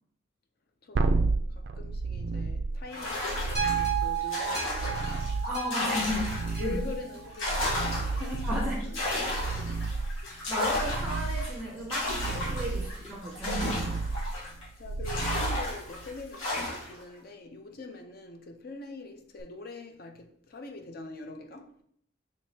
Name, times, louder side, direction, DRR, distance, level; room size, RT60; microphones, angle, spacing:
voice 1, 0.8-5.3 6.1-9.0 10.2-10.3 12.6-13.0 14.8-21.8, left 3 dB, 45° left, 0.5 m, -44 dB
sound 1, 1.0-16.3 19.4-19.5, right 3 dB, 50° right, 0.3 m, -32 dB
sound 2, 2.9-6.8 7.1-14.6 15.0-17.0, left 1 dB, 80° left, 1.7 m, -34 dB
sound 3, 3.5-7.9 8.5-8.6, right 9 dB, 20° left, 1.6 m, -34 dB
voice 2, 5.5-6.8 8.2-8.8 10.3-14.0, left 1 dB, 5° right, 0.6 m, -34 dB
5.2 x 3.2 x 2.7 m
head